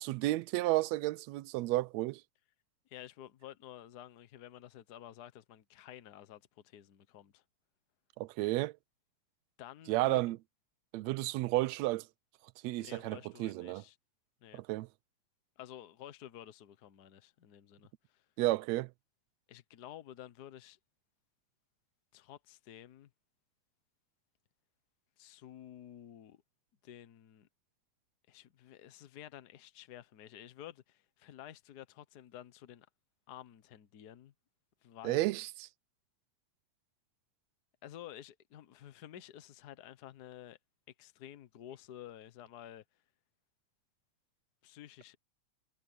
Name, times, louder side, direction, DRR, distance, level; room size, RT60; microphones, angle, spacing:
voice 1, 0.0-2.2 8.2-8.7 9.9-10.4 10.9-12.1 12.6-13.8 14.5-14.9 18.4-18.9 35.0-35.5, right 18 dB, 80° right, 1.7 m, -32 dB
voice 2, 2.8-7.4 9.6-10.2 12.8-14.0 14.4-14.6 15.6-18.2 19.5-20.8 22.1-23.1 25.2-26.4 26.8-27.5 28.3-32.9 33.3-34.3 34.8-35.2 37.8-40.6 41.0-42.8 44.6-45.2, left 11 dB, 60° left, 1.0 m, -51 dB
omnidirectional pair, 3.3 m